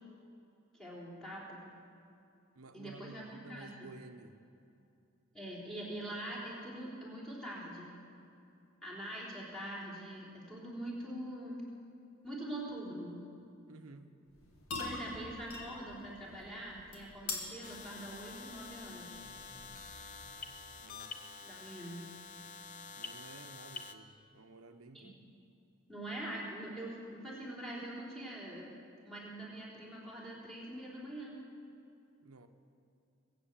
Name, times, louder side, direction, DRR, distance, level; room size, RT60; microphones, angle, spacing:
voice 1, 0.8-1.6 2.7-3.9 5.3-8.0 8.8-11.6 12.2-13.2 14.8-19.2 21.4-22.1 24.9-25.2 25.9-28.7 29.0-31.4, right 1 dB, 5° left, -6 dB, 3.7 m, -44 dB
voice 2, 2.5-4.4 13.7-14.2 14.9-15.0 20.8-21.2 23.0-25.2 32.2-32.5, right 3 dB, 80° right, 8 dB, 1.0 m, -53 dB
sound 1, 14.3-20.7, left 3 dB, 75° left, 2.3 m, -46 dB
sound 2, 17.6-23.9, left 5 dB, 35° left, 0.7 m, -48 dB
22.0 x 8.3 x 7.4 m, 2.6 s
head